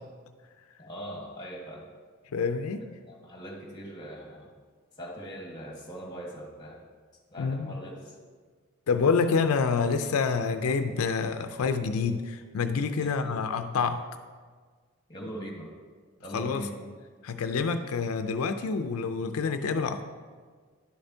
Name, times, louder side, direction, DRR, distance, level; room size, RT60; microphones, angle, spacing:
voice 1, 0.8-1.9 3.1-4.5 5.0-6.8 7.3-8.2 13.0-13.4 15.1-15.7 16.2-16.9, equal, 20° left, -1 dB, 1.5 m, -41 dB
voice 2, 2.3-2.9 7.4-7.7 8.9-14.0 16.3-16.7 17.2-20.1, left 5 dB, 90° left, 8 dB, 0.4 m, -27 dB
10.5 x 6.8 x 2.7 m, 1.6 s
head